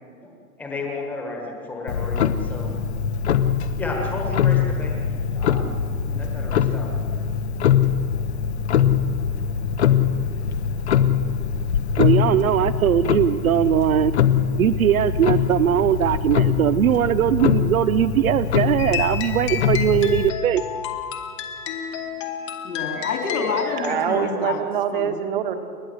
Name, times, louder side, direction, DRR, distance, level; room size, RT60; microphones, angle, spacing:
voice 1, 0.6-2.7 3.8-5.0 5.3-7.0, left 2 dB, 5° left, 0 dB, 1.4 m, -33 dB
Clock, 1.9-20.3, left 8 dB, 45° left, 0.9 m, -23 dB
voice 2, 12.0-14.1 14.6-20.6, right 10 dB, 65° right, 14 dB, 0.7 m, -20 dB
sound 1, 18.8-24.1, left 9 dB, 20° left, 0.9 m, -31 dB
voice 3, 22.6-24.6 24.9-25.3, left 4 dB, 80° left, 2 dB, 3.9 m, -28 dB
voice 4, 23.8-25.6, right 9 dB, 35° right, 7 dB, 1.7 m, -25 dB
29.5 x 11.5 x 7.9 m, 2.3 s
hypercardioid pair, 180°, 44 cm